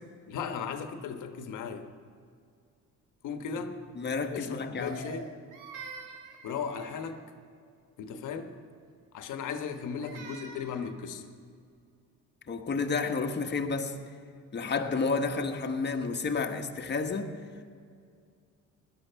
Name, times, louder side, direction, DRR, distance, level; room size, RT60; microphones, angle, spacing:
voice 1, 0.3-1.9 3.2-3.8 4.3-5.3 6.4-7.2 8.0-8.6 9.1-11.2, left 6 dB, 80° left, 7 dB, 1.2 m, -36 dB
voice 2, 3.9-5.0 12.5-13.9 14.5-17.3, left 4 dB, 35° left, 4 dB, 1.4 m, -30 dB
Crying sobbing, 4.7-7.3 9.5-10.9, right 4 dB, 90° right, 1.8 m, -46 dB
17.0 x 11.5 x 5.7 m, 2.3 s
cardioid pair, 90°, 30 cm